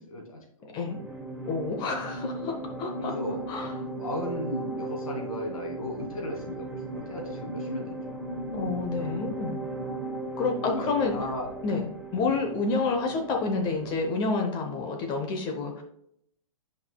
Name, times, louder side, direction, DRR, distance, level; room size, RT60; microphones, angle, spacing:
voice 1, 0.1-0.8 3.0-3.4 3.9-8.2 10.6-11.5 12.1-12.4, left 1 dB, 90° left, 1 dB, 2.4 m, -36 dB
sound 1, 0.9-14.2, right 2 dB, 5° right, 1.2 m, -37 dB
voice 2, 1.5-3.1 3.5-3.7 8.5-9.6 10.4-11.1 11.6-15.8, left 4 dB, 25° left, 3 dB, 0.8 m, -29 dB
9.4 x 5.4 x 2.3 m, 0.72 s
hypercardioid pair, 140°, 18 cm